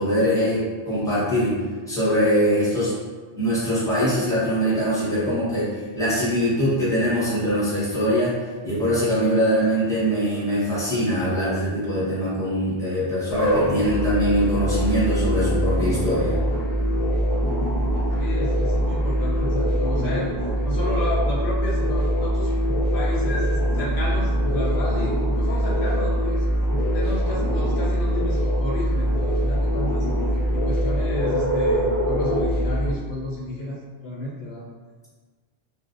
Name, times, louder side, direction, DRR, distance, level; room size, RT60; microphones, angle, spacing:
voice 1, 0.0-1.5 1.9-2.9 3.4-8.3 8.6-16.4, equal, 5° left, -10 dB, 0.8 m, -22 dB
sound 1, 13.3-32.9, equal, 45° left, 0.5 m, -23 dB
voice 2, 17.9-20.3 20.6-22.5 22.9-26.4 26.8-30.1 30.5-34.6, left 1 dB, 75° left, -5 dB, 0.8 m, -32 dB
2.5 x 2.0 x 2.4 m, 1.4 s
omnidirectional pair, 1.1 m